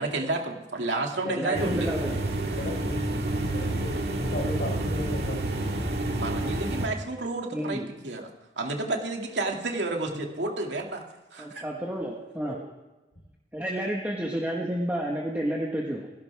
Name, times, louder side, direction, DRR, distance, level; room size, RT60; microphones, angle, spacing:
voice 1, 0.0-1.9 6.2-8.3 8.6-11.0 11.3-11.6, right 2 dB, 90° right, 1 dB, 2.5 m, -30 dB
voice 2, 1.2-2.2 7.5-7.9 11.4-12.6 13.5-16.1, equal, 10° right, -3 dB, 1.6 m, -31 dB
sound 1, 1.5-6.9, right 1 dB, 65° right, 2.1 m, -29 dB
voice 3, 2.5-3.0 3.5-5.9 10.1-10.2 12.4-12.6, left 1 dB, 55° left, 0 dB, 5.3 m, -36 dB
29.0 x 12.0 x 3.6 m, 1.1 s
head